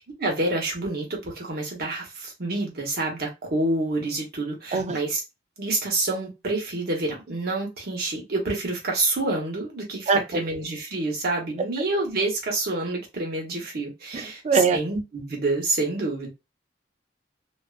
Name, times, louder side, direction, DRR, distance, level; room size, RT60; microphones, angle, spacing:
voice 1, 0.2-5.2 5.6-16.3, right 2 dB, 60° right, 0.9 m, -28 dB
voice 2, 14.1-14.8, right 5 dB, 40° right, 0.3 m, -22 dB
2.4 x 2.2 x 2.3 m
head